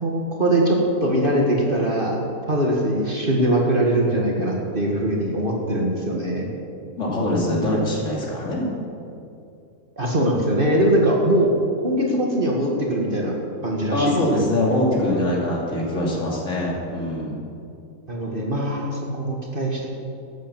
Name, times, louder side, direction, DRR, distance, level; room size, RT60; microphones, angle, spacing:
voice 1, 0.0-2.2 2.5-6.5 10.0-11.5 11.8-13.3 13.6-14.2 18.1-19.9, right 1 dB, 35° right, -1 dB, 1.7 m, -21 dB
voice 2, 7.0-8.7 13.9-17.4, left 1 dB, 55° left, -4 dB, 3.0 m, -23 dB
13.0 x 8.7 x 7.4 m, 2.6 s
omnidirectional pair, 1.6 m